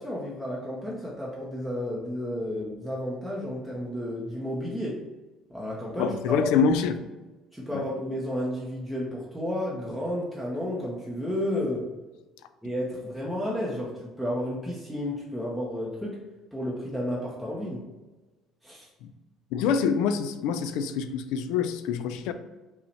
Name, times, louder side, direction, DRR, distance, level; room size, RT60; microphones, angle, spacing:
voice 1, 0.0-5.1 5.5-6.7 7.5-11.9 12.6-16.2 16.5-17.8 18.6-18.9, left 1 dB, ahead, 0.6 m, -32 dB
voice 2, 6.0-7.0 7.7-7.9 19.5-22.3, left 6 dB, 85° left, 0.4 m, -26 dB
5.5 x 2.1 x 4.1 m
cardioid pair, 175°, 0 cm